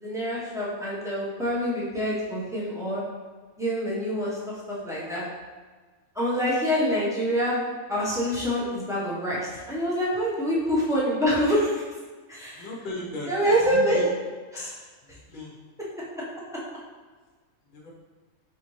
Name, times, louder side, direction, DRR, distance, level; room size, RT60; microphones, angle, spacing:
voice 1, 0.0-3.0 3.6-4.4 4.7-5.2 6.1-7.6 7.9-9.4 9.7-11.8 12.3-12.7 13.2-14.0 14.5-14.7, equal, 5° right, -8 dB, 0.8 m, -26 dB
voice 2, 12.6-13.3 13.6-14.1 14.5-14.7 15.0-15.5 17.7-17.9, left 2 dB, 40° left, -3 dB, 0.9 m, -36 dB
4.2 x 3.5 x 3.1 m, 1.4 s
omnidirectional pair, 1.5 m